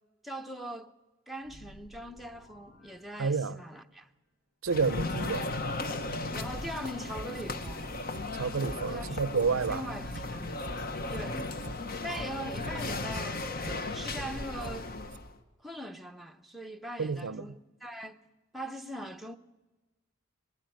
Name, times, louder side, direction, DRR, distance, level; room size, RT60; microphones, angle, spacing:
voice 1, 0.2-0.9 1.3-4.1 6.3-7.9 8.9-10.8 11.1-11.4 12.0-14.9 15.6-18.2 18.5-19.4, equal, ahead, 0.7 m, -41 dB
sound 1, 1.4-3.9, equal, 75° left, 7.1 m, -56 dB
voice 2, 3.2-3.6 4.6-5.5 8.3-9.8 12.1-12.4 17.0-17.5, right 5 dB, 85° right, 0.6 m, -30 dB
sound 2, 4.7-15.3, left 2 dB, 45° left, 1.1 m, -36 dB
sound 3, 7.2-7.8 8.1-8.3 8.6-8.8 9.1-9.8 10.1-10.3 10.6-10.8 11.1-11.8 12.1-12.3 12.6-12.8 13.1-13.8 14.1-14.3 14.6-14.8 15.1-15.2, right 2 dB, 35° right, 0.7 m, -43 dB
21.5 x 14.0 x 9.1 m
head